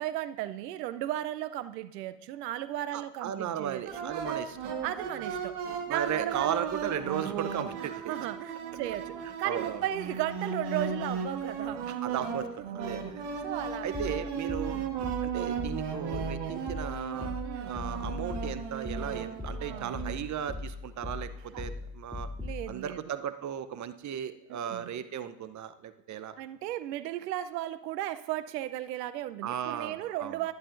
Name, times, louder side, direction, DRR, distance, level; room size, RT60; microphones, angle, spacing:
voice 1, 0.0-4.2 4.8-5.6 5.9-6.7 7.8-11.9 12.6-12.8 13.4-14.1 14.6-14.9 17.4-17.8 19.6-20.0 21.5-21.6 22.4-23.0 24.5-24.9 26.4-30.5, right 13 dB, 80° right, 14 dB, 0.7 m, -35 dB
voice 2, 2.9-4.7 5.9-8.1 9.4-9.8 11.9-12.5 12.7-13.4 13.8-14.8 15.2-17.3 17.6-22.3 22.7-26.3 29.4-30.4, right 9 dB, 35° right, 12 dB, 0.7 m, -36 dB
sound 1, 3.9-20.2, right 6 dB, 55° right, 1.5 m, -36 dB
sound 2, 13.9-22.7, left 2 dB, 10° left, 2.8 m, -39 dB
11.0 x 10.5 x 2.5 m, 0.94 s
hypercardioid pair, 65°, 48 cm